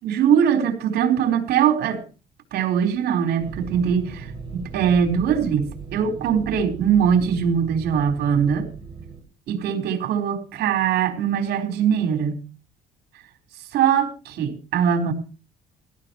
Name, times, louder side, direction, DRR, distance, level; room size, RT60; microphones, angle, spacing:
voice 1, 0.0-2.0 2.5-8.7 9.5-12.4 13.7-15.1, right 8 dB, 75° right, 4 dB, 4.0 m, -21 dB
sound 1, 3.4-9.2, right 5 dB, 30° right, 6.6 m, -37 dB
17.5 x 14.0 x 3.0 m, 0.34 s
cardioid pair, 110°, 17 cm